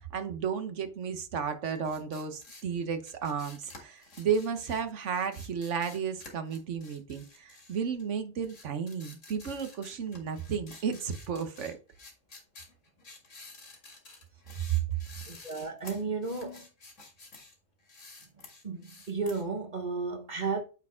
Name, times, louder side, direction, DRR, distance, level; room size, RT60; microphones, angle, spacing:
voice 1, 0.1-11.8 14.7-14.8, right 7 dB, 70° right, 1.3 m, -33 dB
sound 1, 1.7-8.1 8.4-17.6 17.8-19.4, left 3 dB, 70° left, 2.4 m, -51 dB
voice 2, 15.3-16.7 18.6-20.6, right 4 dB, 35° right, 1.3 m, -33 dB
8.7 x 4.4 x 3.6 m
omnidirectional pair, 1.3 m